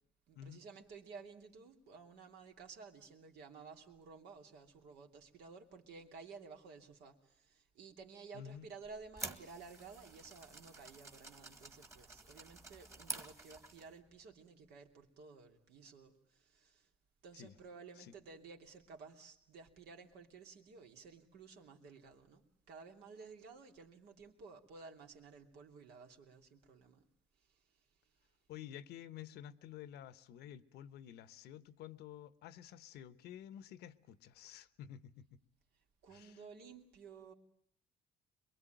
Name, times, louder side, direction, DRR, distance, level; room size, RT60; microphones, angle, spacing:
voice 1, 0.3-16.9 17.2-27.0 27.4-27.6 36.0-37.3, right 4 dB, 75° right, 3.0 m, -54 dB
voice 2, 8.3-8.7 17.3-17.5 18.0-18.1 28.5-35.4 36.1-36.4, left 10 dB, 80° left, 1.1 m, -51 dB
sound 1, 8.8-14.0, right 3 dB, 15° right, 1.7 m, -49 dB
23.0 x 22.5 x 9.2 m
cardioid pair, 110°, 17 cm